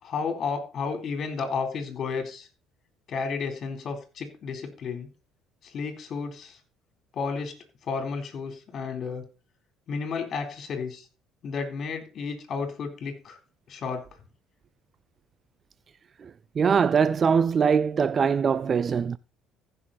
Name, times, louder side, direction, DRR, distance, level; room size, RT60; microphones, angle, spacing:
voice 1, 0.0-2.5 3.1-5.1 5.6-6.6 7.1-7.5 7.9-9.2 9.9-11.0 11.4-13.4 13.7-14.0, left 5 dB, 50° left, 4.0 m, -32 dB
voice 2, 16.6-19.2, right 6 dB, 40° right, 0.5 m, -22 dB
15.0 x 6.6 x 4.3 m
supercardioid pair, 75°, 0 cm